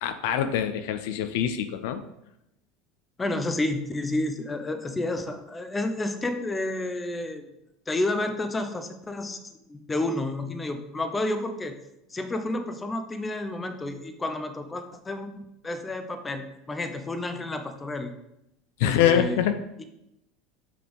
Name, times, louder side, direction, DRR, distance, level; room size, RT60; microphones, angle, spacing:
voice 1, 0.0-2.0 18.8-19.6, left 9 dB, 75° left, 9 dB, 0.4 m, -24 dB
voice 2, 3.2-7.4 7.9-11.8 12.1-18.1 18.8-19.4 19.8-19.9, left 2 dB, 20° left, 8 dB, 0.7 m, -30 dB
5.9 x 3.4 x 5.1 m, 0.85 s
hypercardioid pair, 90°, 0 cm